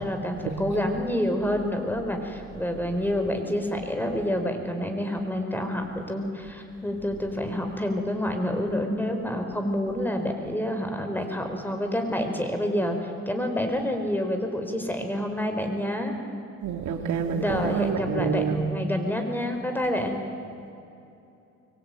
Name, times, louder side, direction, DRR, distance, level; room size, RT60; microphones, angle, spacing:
voice 1, 0.0-16.2 17.3-20.2, left 1 dB, 5° left, 5 dB, 4.7 m, -28 dB
voice 2, 16.6-18.6, right 6 dB, 75° right, 5 dB, 2.4 m, -27 dB
25.0 x 23.0 x 9.3 m, 2.8 s
cardioid pair, 90°, 30 cm